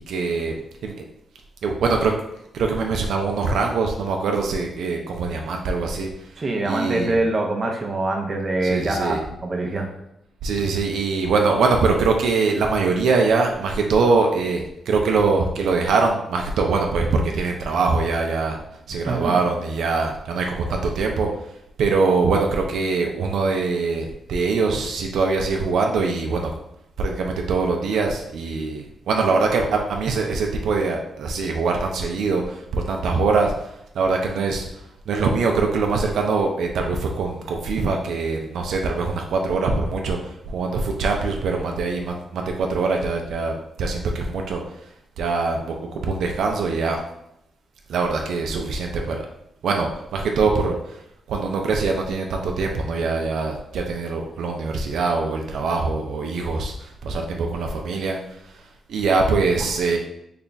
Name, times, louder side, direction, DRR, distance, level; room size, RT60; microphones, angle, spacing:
voice 1, 0.1-0.5 0.8-0.9 1.6-2.1 2.5-6.1 6.6-7.2 8.6-9.2 10.4-18.6 18.9-21.3 21.8-26.5 27.0-34.7 35.1-44.6 45.2-45.7 46.0-47.0 47.9-49.3 49.6-51.0 51.3-58.2 58.5-58.6 58.9-60.0, right 4 dB, 80° right, 2 dB, 0.4 m, -23 dB
voice 2, 6.4-9.9 19.1-19.4, right 2 dB, 35° right, 2 dB, 0.6 m, -24 dB
3.3 x 2.3 x 3.9 m, 0.82 s
cardioid pair, 115°, 0 cm